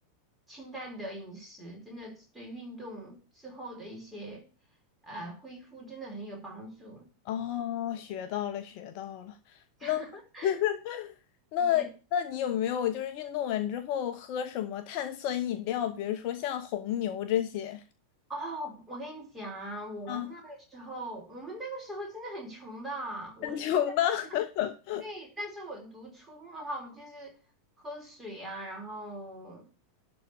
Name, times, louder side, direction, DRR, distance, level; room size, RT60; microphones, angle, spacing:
voice 1, 0.5-4.4 5.0-7.1 9.8-10.6 11.6-11.9 18.3-23.8 25.0-27.4 27.8-29.7, right 1 dB, 10° right, 4.7 m, -41 dB
voice 2, 7.3-9.3 9.8-10.0 10.4-11.1 11.5-17.8 20.1-20.3 23.4-25.0, left 10 dB, 45° left, 1.0 m, -31 dB
12.0 x 4.1 x 8.1 m
figure-of-eight pair, 90°, 0 cm